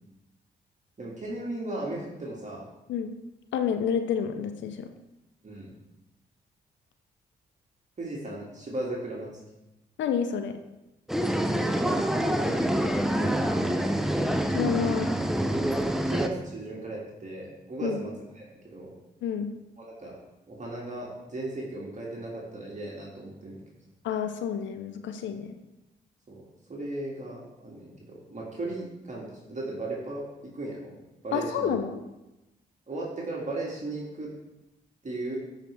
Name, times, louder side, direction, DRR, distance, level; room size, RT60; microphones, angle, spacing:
voice 1, 1.0-2.7 5.4-5.7 8.0-9.3 11.7-13.7 14.9-15.0 16.0-18.9 19.8-20.2 20.5-23.6 26.3-30.9 31.2-31.8 32.9-34.3 35.0-35.4, right 2 dB, 40° right, -4 dB, 2.1 m, -36 dB
voice 2, 3.5-4.9 10.0-10.6 14.5-15.1 17.8-18.0 19.2-19.5 24.0-25.5 31.3-32.0, left 7 dB, 75° left, 8 dB, 0.6 m, -29 dB
sound 1, 11.1-16.3, right 1 dB, ahead, 0.8 m, -26 dB
10.0 x 4.8 x 3.4 m, 0.97 s
supercardioid pair, 45°, 19 cm